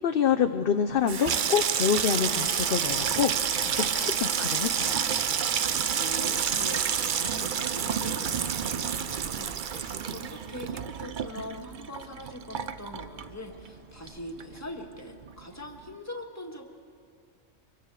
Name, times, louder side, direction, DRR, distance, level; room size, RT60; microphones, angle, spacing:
voice 1, 0.0-5.0, left 8 dB, 55° left, 7 dB, 0.8 m, -27 dB
Water tap faucet / Sink (filling or washing), 0.9-13.8 14.1-14.7 15.0-15.3, right 8 dB, 50° right, 0.6 m, -29 dB
sound 1, 2.1-14.9, equal, 30° right, 2.0 m, -50 dB
voice 2, 5.9-16.6, left 1 dB, 15° left, 2 dB, 1.6 m, -42 dB
25.0 x 22.5 x 4.8 m, 2.1 s
omnidirectional pair, 1.3 m